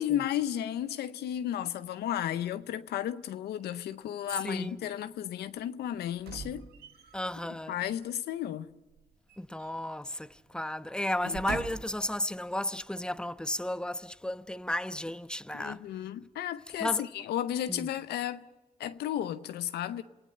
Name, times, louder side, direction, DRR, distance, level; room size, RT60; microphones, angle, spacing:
voice 1, 0.0-6.7 7.5-8.7 11.2-11.4 15.5-18.4 18.8-20.0, left 11 dB, 90° left, 0.6 m, -33 dB
voice 2, 4.4-4.8 7.1-7.8 9.4-15.8 16.8-17.0 17.7-17.9, left 1 dB, 5° left, 0.9 m, -33 dB
sound 1, 6.2-7.3 8.9-10.0 10.3-10.5 11.1-12.1 12.7-12.8, right 6 dB, 85° right, 1.4 m, -43 dB
27.5 x 16.0 x 7.7 m
supercardioid pair, 45°, 16 cm